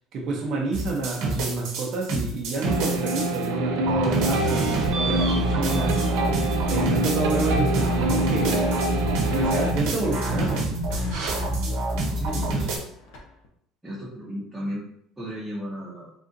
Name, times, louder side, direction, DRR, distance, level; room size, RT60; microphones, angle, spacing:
voice 1, 0.1-6.0 6.7-8.7 9.3-10.7, right 3 dB, 45° right, -1 dB, 0.6 m, -29 dB
sound 1, 0.7-3.5 3.9-12.8, right 1 dB, 70° right, 0.9 m, -27 dB
sound 2, 2.6-9.7, right 2 dB, 85° right, 0.4 m, -26 dB
sound 3, 7.8-13.5, left 2 dB, 80° left, 0.7 m, -43 dB
voice 2, 12.1-12.7 13.8-14.9 15.2-16.1, equal, 5° right, -8 dB, 0.7 m, -34 dB
3.6 x 2.4 x 2.6 m, 0.70 s
cardioid pair, 155°, 0 cm